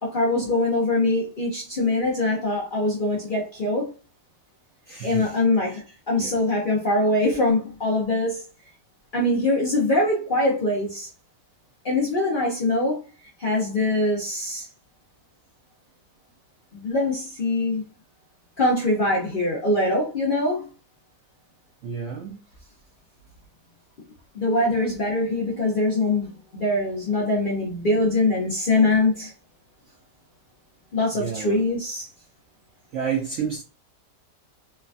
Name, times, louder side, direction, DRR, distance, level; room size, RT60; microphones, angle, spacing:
voice 1, 0.0-3.9 5.0-5.8 6.1-8.4 9.1-11.1 11.8-13.0 13.4-14.7 16.7-17.8 18.6-20.7 24.3-29.3 30.9-32.1, left 2 dB, 50° left, 0.6 m, -23 dB
voice 2, 4.9-5.3 5.7-5.8 6.2-6.3 21.8-22.4 31.2-31.6 32.9-33.6, right 7 dB, 85° right, 0.6 m, -30 dB
3.1 x 2.3 x 2.5 m
omnidirectional pair, 1.8 m